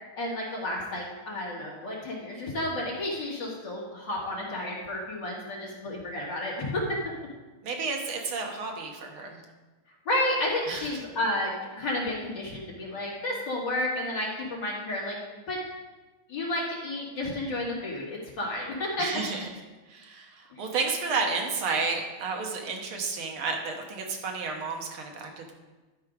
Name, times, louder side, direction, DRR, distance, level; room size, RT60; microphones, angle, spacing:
voice 1, 0.1-6.8 10.1-15.2 15.5-15.6 16.3-19.1 20.5-20.6, left 1 dB, 60° left, -4 dB, 2.6 m, -31 dB
voice 2, 7.6-9.4 10.7-11.0 19.0-19.5 19.9-25.5, right 4 dB, 85° right, 2 dB, 2.0 m, -31 dB
11.5 x 4.7 x 5.1 m, 1.2 s
omnidirectional pair, 2.3 m